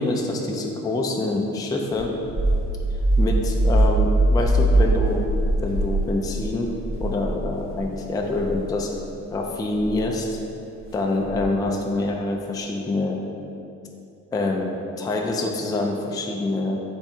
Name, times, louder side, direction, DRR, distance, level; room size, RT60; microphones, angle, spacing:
voice 1, 0.0-2.2 3.2-6.7 7.0-9.0 9.3-10.4 10.9-13.2 14.3-16.8, left 2 dB, 15° left, 1 dB, 0.4 m, -26 dB
sound 1, 1.9-7.8 8.3-8.6 9.8-10.1 11.2-11.6, right 1 dB, 45° right, 0.9 m, -22 dB
3.6 x 3.4 x 4.2 m, 2.7 s
cardioid pair, 90°, 30 cm